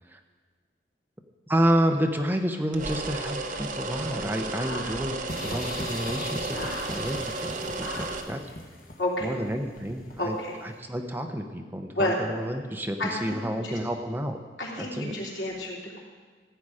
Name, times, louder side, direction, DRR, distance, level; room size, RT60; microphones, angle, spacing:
voice 1, 1.5-6.6 6.9-7.2 7.8-8.4 9.2-10.3 10.6-14.4 14.8-15.1, equal, 10° right, 4 dB, 0.7 m, -29 dB
sound 1, 2.7-8.2, right 3 dB, 50° right, 0.9 m, -33 dB
voice 2, 4.5-5.0 6.5-7.0 7.8-8.1 9.0-9.4 10.2-10.6 11.9-12.2 13.0-13.4 13.6-13.7 14.6-16.0, left 1 dB, 90° left, -4 dB, 3.0 m, -31 dB
sound 2, 5.3-10.4, left 2 dB, 50° left, 1.5 m, -39 dB
15.0 x 8.7 x 4.9 m, 1.5 s
head